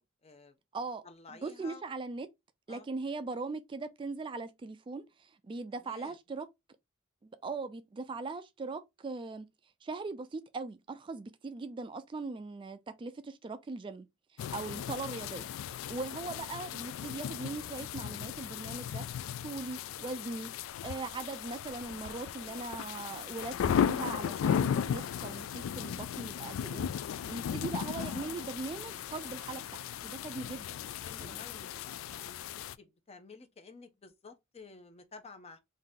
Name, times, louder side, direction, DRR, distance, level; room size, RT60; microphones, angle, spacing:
voice 1, 0.2-0.6 1.0-1.8 2.7-2.9 5.8-6.2 31.0-32.4 32.8-35.6, left 4 dB, 30° left, 0.6 m, -52 dB
voice 2, 0.7-1.0 1.3-2.3 2.7-6.5 7.2-9.5 9.8-14.1 14.3-15.5 15.9-19.1 19.4-20.5 20.8-26.9 27.3-30.9 31.2-31.4, right 3 dB, 25° right, 0.3 m, -40 dB
sound 1, 14.4-32.7, left 8 dB, 90° left, 0.3 m, -36 dB
sound 2, 24.8-30.5, equal, 65° left, 1.7 m, -60 dB
3.7 x 2.7 x 3.5 m
head